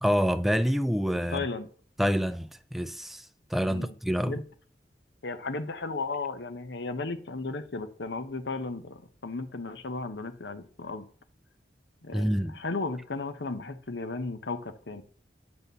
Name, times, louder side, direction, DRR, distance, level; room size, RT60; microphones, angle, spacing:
voice 1, 0.0-1.5 2.0-4.4 12.1-12.6, equal, ahead, 0.3 m, -27 dB
voice 2, 1.3-1.7 3.7-3.9 4.2-4.4 5.2-11.1 12.0-15.0, left 3 dB, 90° left, 0.9 m, -35 dB
8.9 x 4.3 x 6.7 m
head